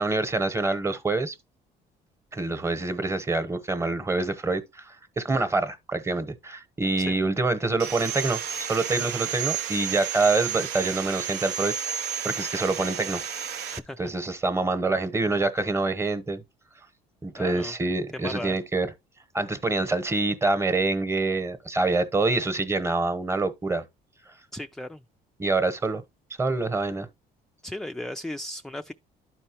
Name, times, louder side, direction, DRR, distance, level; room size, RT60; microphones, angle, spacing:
voice 1, 0.0-1.3 2.3-11.7 12.2-13.2 13.6-13.7 14.0-16.4 17.2-18.9 19.3-23.8 25.4-26.0 26.4-27.1, right 3 dB, 15° right, 1.0 m, -26 dB
Sawing, 7.8-13.8, right 9 dB, 80° right, 0.7 m, -32 dB
voice 2, 13.7-14.0 17.4-17.7 18.1-18.6 24.5-25.0 27.6-28.9, left 1 dB, 5° left, 0.3 m, -36 dB
12.0 x 4.5 x 2.9 m
cardioid pair, 110°, 17 cm